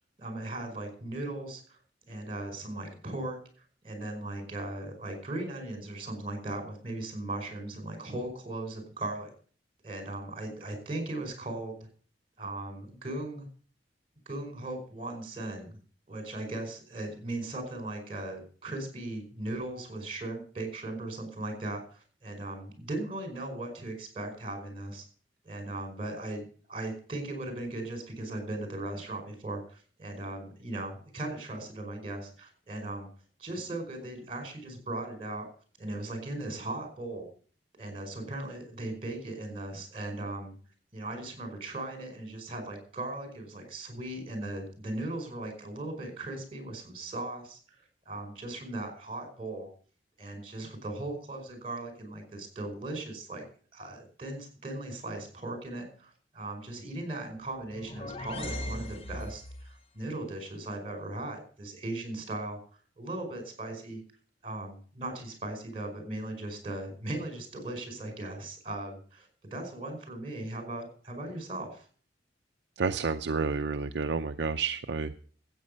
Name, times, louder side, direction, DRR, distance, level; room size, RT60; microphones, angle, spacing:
voice 1, 0.2-1.8 2.1-3.4 3.8-9.3 9.8-11.9 12.4-13.5 14.2-15.7 16.1-25.0 25.4-33.1 33.4-35.5 35.8-37.3 37.8-40.5 40.9-49.7 50.2-53.4 53.7-62.6 63.0-64.0 64.4-71.9, right 2 dB, 30° right, 5 dB, 5.1 m, -38 dB
sound 1, 57.5-59.8, left 1 dB, 35° left, 1.0 m, -39 dB
voice 2, 72.8-75.2, right 4 dB, 70° right, 7 dB, 0.6 m, -30 dB
13.5 x 8.8 x 6.6 m, 0.43 s
head